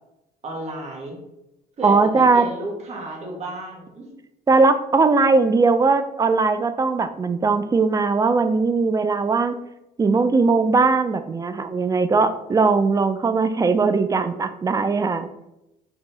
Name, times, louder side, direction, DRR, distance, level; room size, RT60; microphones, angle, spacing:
voice 1, 0.4-1.2 1.8-4.1, right 1 dB, 40° right, 0 dB, 1.4 m, -32 dB
voice 2, 1.8-2.4 4.5-9.5 10.0-15.3, right 4 dB, 20° right, 11 dB, 0.3 m, -19 dB
3.8 x 2.9 x 4.0 m, 0.88 s
cardioid pair, 110°, 17 cm